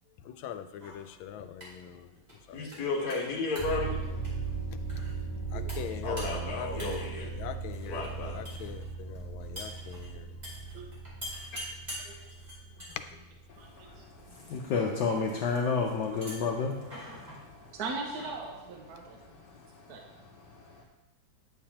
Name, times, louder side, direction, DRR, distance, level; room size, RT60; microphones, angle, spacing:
voice 1, 0.2-2.1 2.5-2.9 5.5-10.4 12.9-13.2 17.2-17.3, left 10 dB, 90° left, 1.4 m, -42 dB
sound 1, 0.7-19.6, equal, 20° right, 2.7 m, -48 dB
voice 2, 2.5-3.9 6.0-7.3 7.9-8.4, left 3 dB, 55° left, 1.7 m, -33 dB
sound 2, 3.6-14.4, right 4 dB, 20° left, 2.2 m, -38 dB
voice 3, 5.5-6.0 9.6-9.7 10.7-10.9 12.0-12.2 12.8-12.9 13.6-14.0 17.7-19.2 19.9-20.0, right 3 dB, 60° right, 1.1 m, -40 dB
voice 4, 13.5-17.8 19.0-20.8, left 5 dB, 70° left, 1.2 m, -33 dB
9.4 x 7.1 x 2.8 m
omnidirectional pair, 2.1 m